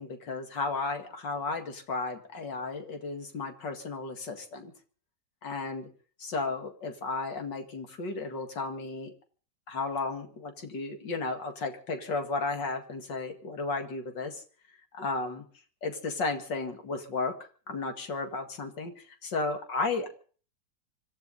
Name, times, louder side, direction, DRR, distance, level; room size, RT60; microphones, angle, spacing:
voice 1, 0.0-4.7 5.4-5.9 6.2-9.1 9.7-14.4 14.9-15.4 15.8-17.3 17.7-20.1, left 3 dB, 85° left, 5 dB, 2.7 m, -34 dB
26.0 x 13.5 x 4.0 m, 0.42 s
omnidirectional pair, 1.9 m